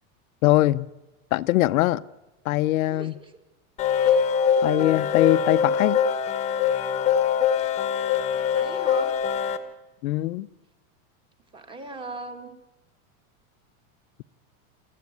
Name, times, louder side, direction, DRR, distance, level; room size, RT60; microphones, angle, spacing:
voice 1, 0.4-0.9 1.3-2.0 2.4-3.1 4.6-6.0 10.0-10.5, left 16 dB, 75° left, 14 dB, 0.8 m, -22 dB
voice 2, 2.9-3.3 3.9-4.3 8.3-9.2 11.5-12.5, right 2 dB, 10° right, 7 dB, 1.5 m, -39 dB
sound 1, 3.8-9.6, left 7 dB, 15° left, 1.1 m, -23 dB
28.0 x 14.5 x 9.4 m, 1.1 s
supercardioid pair, 175°, 42 cm